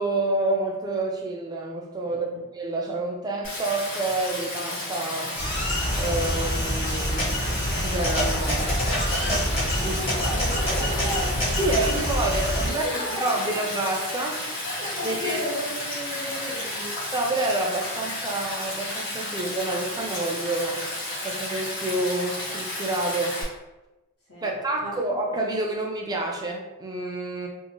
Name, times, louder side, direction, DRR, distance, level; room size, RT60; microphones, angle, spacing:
voice 1, 0.0-2.3 2.5-5.3 5.9-8.7 9.8-10.1 11.6-12.9 13.2-14.4 15.0-15.4 17.1-20.8 21.2-23.4 24.4-27.5, right 2 dB, 15° right, 0 dB, 0.3 m, -28 dB
voice 2, 2.1-2.4 9.8-13.6 14.6-17.0 24.3-25.1, equal, 85° left, -10 dB, 1.2 m, -35 dB
Stream, 3.4-23.4, left 1 dB, 60° left, 1.3 m, -33 dB
sound 1, 5.4-12.7, equal, 25° left, 0.9 m, -26 dB
2.7 x 2.4 x 2.9 m, 1.1 s
head